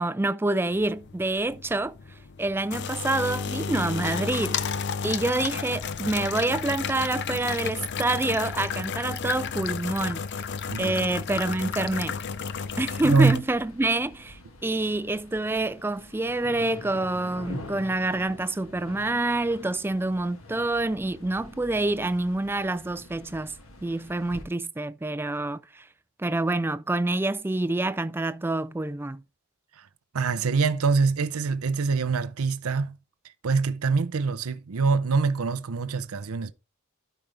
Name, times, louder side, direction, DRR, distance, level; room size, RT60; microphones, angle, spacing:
voice 1, 0.0-1.9 2.4-4.6 5.0-10.3 10.8-12.2 12.8-23.6 23.8-25.8 26.2-29.2, right 2 dB, 10° right, 0.3 m, -27 dB
sound 1, 0.7-13.4, left 6 dB, 50° left, 0.5 m, -32 dB
sound 2, 10.6-24.4, left 1 dB, 70° left, 1.8 m, -46 dB
voice 2, 13.0-13.4 29.8-29.9 30.1-33.0 33.4-36.5, right 4 dB, 80° right, 0.6 m, -24 dB
12.5 x 5.1 x 3.2 m
head